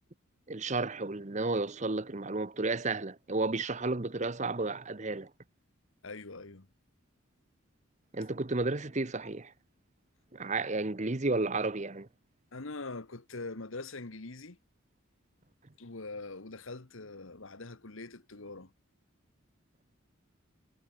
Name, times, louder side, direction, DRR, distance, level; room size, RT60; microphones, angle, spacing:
voice 1, 0.5-5.3 8.1-9.5 10.3-12.1, right 3 dB, 35° right, 0.9 m, -32 dB
voice 2, 6.0-6.7 12.5-14.6 15.8-18.7, left 3 dB, 70° left, 1.5 m, -43 dB
head